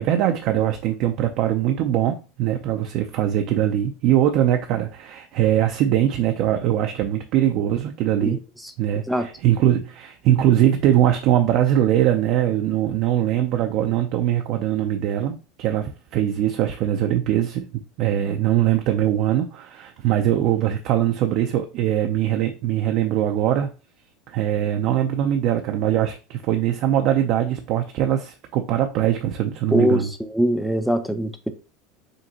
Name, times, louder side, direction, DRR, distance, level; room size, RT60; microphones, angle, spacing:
voice 1, 0.0-8.4 8.8-17.7 18.0-23.7 24.3-30.1, right 11 dB, 55° right, 0.5 m, -21 dB
voice 2, 29.7-31.5, equal, ahead, 0.5 m, -22 dB
5.1 x 2.9 x 2.8 m
supercardioid pair, 125°, 0 cm